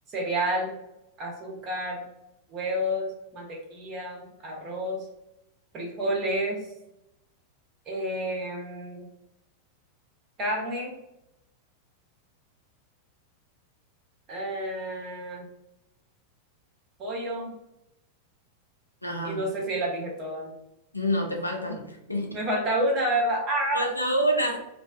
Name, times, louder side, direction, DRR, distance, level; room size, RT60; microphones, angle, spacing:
voice 1, 0.1-0.7 1.2-2.0 2.5-5.1 5.7-6.7 7.9-9.1 10.4-11.0 14.3-15.4 17.0-17.6 19.2-20.5 22.3-23.9, right 1 dB, 30° right, -1 dB, 0.8 m, -29 dB
voice 2, 19.0-19.4 20.9-22.3 23.7-24.6, equal, 85° left, 1 dB, 0.4 m, -27 dB
2.5 x 2.2 x 2.4 m, 0.85 s
figure-of-eight pair, 90°, 0 cm